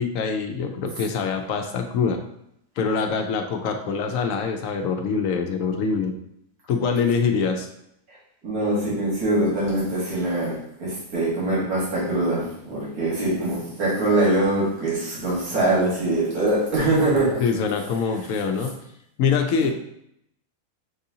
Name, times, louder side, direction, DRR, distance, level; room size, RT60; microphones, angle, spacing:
voice 1, 0.0-2.2 2.8-6.1 6.7-7.7 17.4-18.7 19.2-19.7, left 5 dB, 70° left, 5 dB, 0.9 m, -24 dB
voice 2, 8.4-17.4, right 2 dB, 90° right, -6 dB, 1.9 m, -23 dB
6.1 x 2.6 x 2.7 m, 0.74 s
omnidirectional pair, 1.5 m